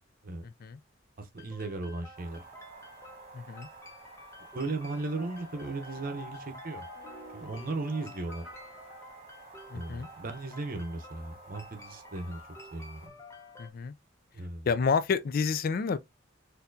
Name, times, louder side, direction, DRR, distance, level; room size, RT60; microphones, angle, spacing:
voice 1, 0.4-0.8 3.3-3.7 9.7-10.1 13.6-13.9 14.7-16.0, left 5 dB, 50° left, 0.3 m, -29 dB
voice 2, 1.2-2.4 4.5-6.9 7.3-8.4 9.7-12.4 12.7-13.1 14.3-14.7, right 2 dB, 50° right, 0.8 m, -36 dB
sound 1, 1.4-13.7, left 1 dB, 15° left, 0.6 m, -51 dB
sound 2, 2.1-13.1, right 3 dB, 30° right, 1.6 m, -52 dB
sound 3, 5.6-9.9, left 1 dB, ahead, 1.8 m, -49 dB
4.2 x 2.7 x 2.6 m
head